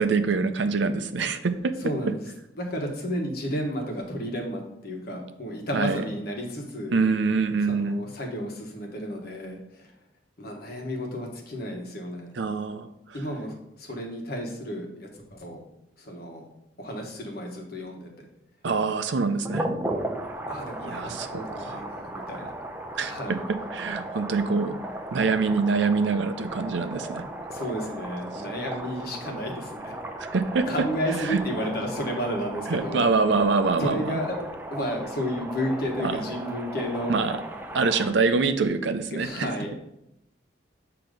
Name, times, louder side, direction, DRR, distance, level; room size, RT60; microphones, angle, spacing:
voice 1, 0.0-1.7 5.7-6.0 6.9-8.0 12.3-12.9 18.6-19.7 20.9-21.8 23.0-24.8 25.1-27.2 30.2-30.7 31.2-31.4 32.7-34.2 36.0-36.1 37.1-37.4 37.7-39.5, right 4 dB, 70° right, 10 dB, 0.5 m, -25 dB
voice 2, 1.8-2.3 2.5-7.0 7.7-9.9 10.4-12.3 13.1-15.6 16.0-16.5 16.8-18.3 20.5-22.5 23.0-23.4 27.5-29.9 30.7-33.0 33.8-34.4 34.7-37.1 39.1-39.7, equal, 55° left, 1 dB, 1.2 m, -32 dB
sound 1, 19.4-38.1, right 1 dB, 10° right, 0.5 m, -36 dB
7.8 x 2.9 x 5.1 m, 0.83 s
head